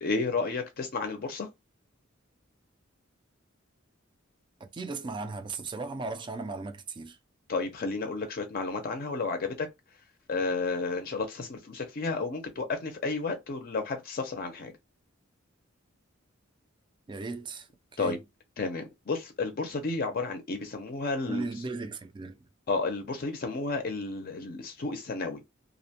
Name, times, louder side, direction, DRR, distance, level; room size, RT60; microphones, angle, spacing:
voice 1, 0.0-1.5 7.5-9.7 10.3-14.7 18.0-18.2 18.6-21.5 22.7-25.4, left 3 dB, 45° left, 0.5 m, -32 dB
voice 2, 4.6-7.2 17.1-17.7 17.9-18.2 21.3-22.4, right 3 dB, 25° right, 0.4 m, -36 dB
2.5 x 2.1 x 2.7 m
head